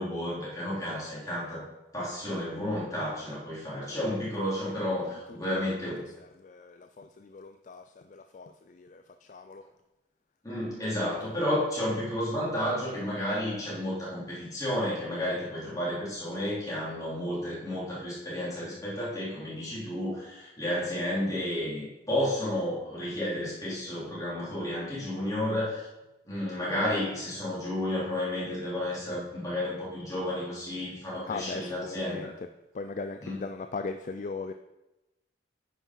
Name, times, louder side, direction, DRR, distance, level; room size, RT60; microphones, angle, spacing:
voice 1, 0.0-1.6 1.9-6.1 10.4-25.9 26.3-32.2 33.2-33.4, left 1 dB, 20° left, -8 dB, 3.9 m, -32 dB
voice 2, 6.2-9.6 31.3-32.3 32.7-34.5, left 4 dB, 40° left, 8 dB, 0.3 m, -39 dB
9.2 x 5.6 x 5.6 m, 0.99 s
head